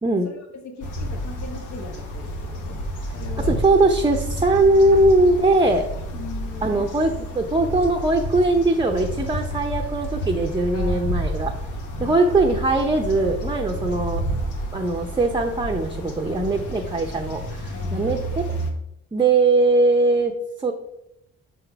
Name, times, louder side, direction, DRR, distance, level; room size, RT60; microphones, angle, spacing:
voice 1, 0.3-2.8 3.1-3.5 4.9-5.0 6.1-7.2 10.7-11.4 12.0-12.3 16.2-16.6 17.7-18.2, left 4 dB, 65° left, 3 dB, 1.2 m, -39 dB
sound 1, 0.8-18.7, equal, 90° left, 1.1 m, -30 dB
voice 2, 3.5-5.9 6.6-11.5 12.0-14.2 14.7-18.2 18.5-18.6 19.1-20.3 20.6-20.7, right 2 dB, 15° right, 1 dB, 0.6 m, -20 dB
6.2 x 3.8 x 4.6 m, 0.80 s
cardioid pair, 90°, 30 cm